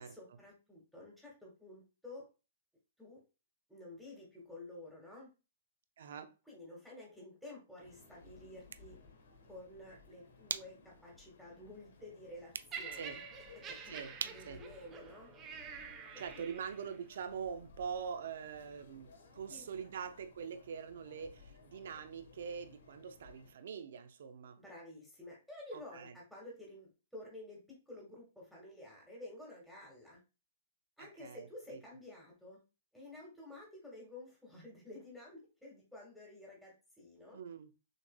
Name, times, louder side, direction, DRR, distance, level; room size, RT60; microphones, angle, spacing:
voice 1, 0.0-2.2 3.0-3.2 3.7-5.3 6.5-9.0 9.5-13.2 13.7-13.9 14.2-15.3 16.3-16.5 19.5-19.7 24.6-30.2 31.0-32.6 32.9-37.4, left 1 dB, ahead, 1.7 m, -51 dB
voice 2, 6.0-6.3 12.9-13.2 13.9-14.1 14.5-14.6 16.2-24.6 25.7-26.1 31.0-31.8 37.3-37.7, right 6 dB, 70° right, 0.7 m, -44 dB
sound 1, 7.8-23.5, left 4 dB, 80° left, 1.2 m, -60 dB
sound 2, 8.4-15.9, right 6 dB, 90° right, 0.3 m, -49 dB
Laughter, 12.7-17.0 17.8-17.9, right 6 dB, 25° right, 0.7 m, -48 dB
6.5 x 3.2 x 2.2 m
hypercardioid pair, 135°, 0 cm